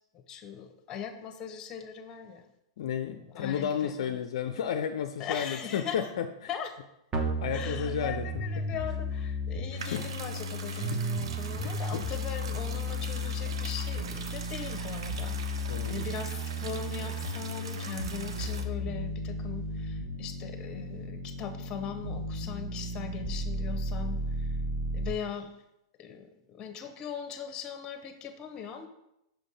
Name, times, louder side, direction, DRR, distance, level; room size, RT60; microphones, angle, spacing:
voice 1, 0.1-2.5 3.1-4.2 5.2-6.1 6.5-6.8 7.5-24.6 24.9-25.5 26.0-28.9, left 7 dB, 30° left, 7 dB, 0.8 m, -40 dB
voice 2, 2.8-6.5 7.2-8.4 9.7-10.1 10.7-11.0 11.6-12.0 15.7-16.1, left 8 dB, 65° left, 8 dB, 0.4 m, -33 dB
sound 1, 7.1-25.1, equal, 25° right, 1.1 m, -34 dB
sound 2, 9.8-18.6, right 5 dB, 70° right, 0.6 m, -43 dB
5.8 x 5.2 x 3.3 m, 0.85 s
hypercardioid pair, 110°, 3 cm